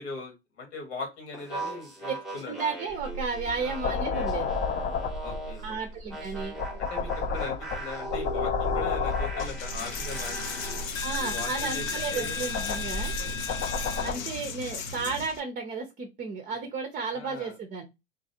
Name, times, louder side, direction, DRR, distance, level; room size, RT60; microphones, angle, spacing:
voice 1, 0.0-2.6 3.6-3.7 5.2-5.8 6.8-10.8 11.2-12.3 13.2-13.4 14.1-14.2 16.5-16.6 17.1-17.5, left 3 dB, 75° left, 2 dB, 1.6 m, -40 dB
sound 1, 1.3-5.7 6.1-10.9, equal, ahead, 0.9 m, -38 dB
voice 2, 2.4-4.5 5.6-6.6 11.0-13.1 14.0-17.8, right 4 dB, 25° right, 4 dB, 0.6 m, -33 dB
sound 2, 2.9-14.1, left 4 dB, 30° left, 0.5 m, -32 dB
Coin (dropping), 9.4-15.4, left 5 dB, 55° left, 0.9 m, -34 dB
3.1 x 2.4 x 2.7 m, 0.23 s
hypercardioid pair, 90°, 34 cm